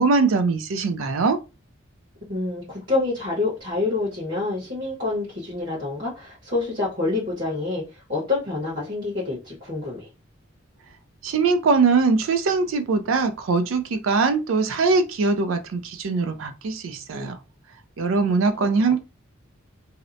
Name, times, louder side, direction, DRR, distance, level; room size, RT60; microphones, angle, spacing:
voice 1, 0.0-1.4 11.2-17.4 18.0-19.0, right 4 dB, 85° right, 0.4 m, -21 dB
voice 2, 2.3-10.1 17.1-17.3 18.0-18.7, left 3 dB, 45° right, 1.1 m, -27 dB
2.7 x 2.0 x 2.5 m
head